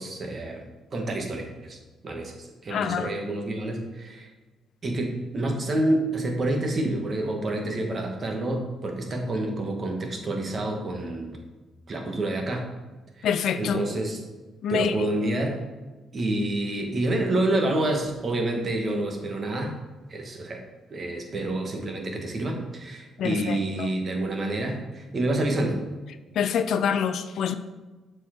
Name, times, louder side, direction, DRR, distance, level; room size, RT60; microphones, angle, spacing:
voice 1, 0.0-1.8 2.0-4.3 4.8-11.4 11.9-12.7 13.2-13.3 13.6-14.2 14.7-15.6 16.1-19.8 20.1-20.6 20.9-25.8, right 1 dB, 40° right, 3 dB, 1.4 m, -28 dB
voice 2, 2.7-3.1 13.2-13.8 14.6-15.1 23.2-23.9 26.3-27.6, left 7 dB, 70° left, 11 dB, 0.4 m, -26 dB
7.2 x 4.5 x 4.4 m, 1.2 s
cardioid pair, 90°, 0 cm